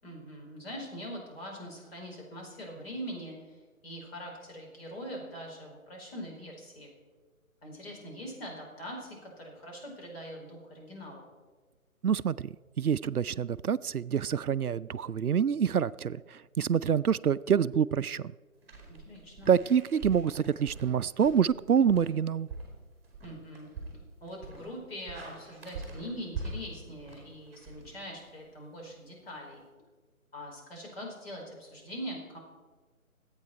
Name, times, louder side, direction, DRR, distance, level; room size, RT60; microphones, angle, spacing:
voice 1, 0.0-6.9 7.6-11.2 18.9-19.5 23.2-23.7 24.2-29.6 30.3-32.4, equal, 45° left, -1 dB, 4.9 m, -42 dB
voice 2, 12.0-18.3 19.5-22.5, right 7 dB, 85° right, 18 dB, 0.5 m, -27 dB
sound 1, 18.6-28.5, right 3 dB, 5° right, 2.3 m, -44 dB
23.5 x 8.8 x 4.5 m, 1.4 s
figure-of-eight pair, 145°, 43 cm